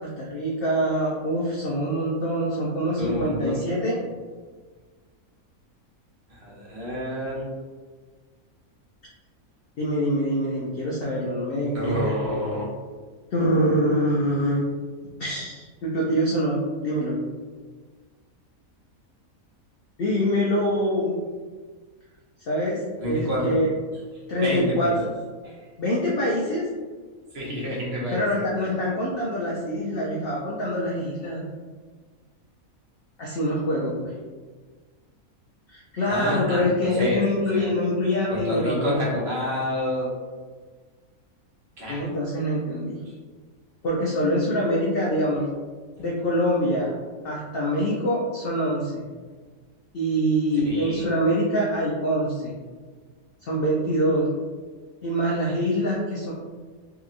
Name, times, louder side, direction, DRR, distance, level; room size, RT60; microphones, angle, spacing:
voice 1, 0.2-4.0 9.8-12.1 13.3-14.6 15.2-17.2 20.0-21.2 22.5-23.7 24.3-25.1 25.8-26.6 28.1-31.4 33.2-34.1 35.7-38.9 41.9-43.0 43.8-45.5 46.0-46.9 47.2-49.1 49.9-52.6 53.4-54.3 55.0-56.3, equal, 70° left, -4 dB, 0.5 m, -25 dB
voice 2, 3.0-3.6 6.3-7.5 11.7-12.6 23.0-23.6 24.4-24.9 25.4-25.7 27.3-28.4 36.1-37.2 37.5-37.7 38.3-40.2 41.8-42.1 43.0-43.1 45.9-46.0 50.6-51.1, left 1 dB, 55° right, -6 dB, 0.9 m, -28 dB
2.8 x 2.7 x 2.4 m, 1.5 s
omnidirectional pair, 1.5 m